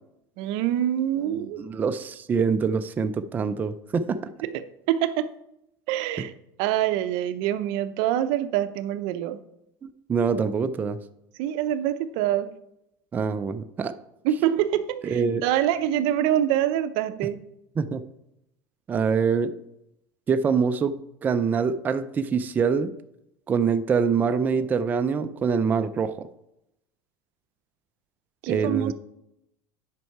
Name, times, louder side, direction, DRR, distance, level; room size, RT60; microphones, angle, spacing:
voice 1, 0.4-1.6 4.4-4.6 4.9-5.3 5.9-6.3 6.6-9.4 11.4-12.5 14.2-17.4 28.4-28.9, right 11 dB, 60° right, 11 dB, 0.6 m, -25 dB
voice 2, 1.6-4.2 10.1-11.0 13.1-13.9 15.0-15.4 17.8-18.0 18.9-19.5 20.3-22.9 23.5-26.3 28.5-28.9, right 5 dB, 20° right, 9 dB, 0.4 m, -24 dB
9.5 x 5.4 x 4.6 m, 0.83 s
supercardioid pair, 150°, 10 cm